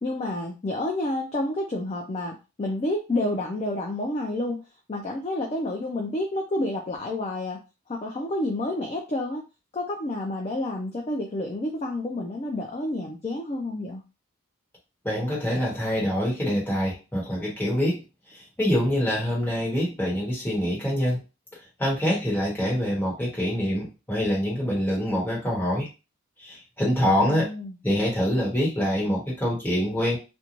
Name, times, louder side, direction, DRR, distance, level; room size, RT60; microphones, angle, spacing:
voice 1, 0.0-4.6 4.9-7.6 7.9-9.4 9.7-14.0 27.0-27.8, left 1 dB, 25° left, 1 dB, 0.3 m, -29 dB
voice 2, 15.0-18.0 18.3-21.2 21.8-25.9 26.4-27.5 27.8-30.2, equal, 10° left, -5 dB, 1.1 m, -25 dB
2.5 x 2.2 x 2.9 m, 0.29 s
head